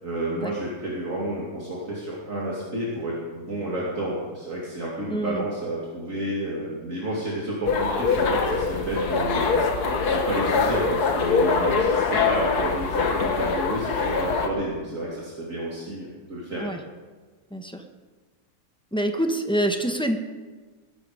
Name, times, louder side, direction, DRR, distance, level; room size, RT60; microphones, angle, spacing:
voice 1, 0.0-9.7 10.1-16.6, right 1 dB, 55° right, -5 dB, 2.9 m, -30 dB
voice 2, 5.1-5.4 16.6-16.8 17.5-17.8 18.9-20.2, right 1 dB, 5° left, 5 dB, 1.1 m, -26 dB
sound 1, 7.7-14.5, left 4 dB, 80° left, 1.9 m, -23 dB
19.5 x 12.5 x 5.1 m, 1.4 s
omnidirectional pair, 1.6 m